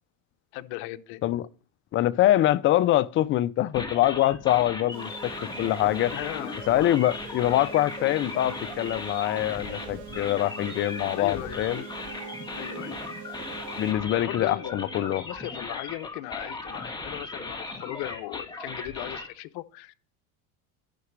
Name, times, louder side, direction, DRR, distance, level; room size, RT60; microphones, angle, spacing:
voice 1, 0.5-1.2 6.1-6.7 11.2-11.6 12.5-13.0 14.1-14.8 15.1-19.9, left 17 dB, 65° left, 0.7 m, -37 dB
voice 2, 1.9-5.3 5.6-6.1 6.7-11.8 13.8-15.2, left 14 dB, 30° left, 0.4 m, -24 dB
sound 1, 3.7-19.3, left 3 dB, 10° left, 1.6 m, -37 dB
sound 2, 4.9-13.9, right 7 dB, 80° right, 4.5 m, -44 dB
sound 3, 7.9-15.2, right 3 dB, 50° right, 4.7 m, -47 dB
11.5 x 5.9 x 3.2 m
supercardioid pair, 110°, 41 cm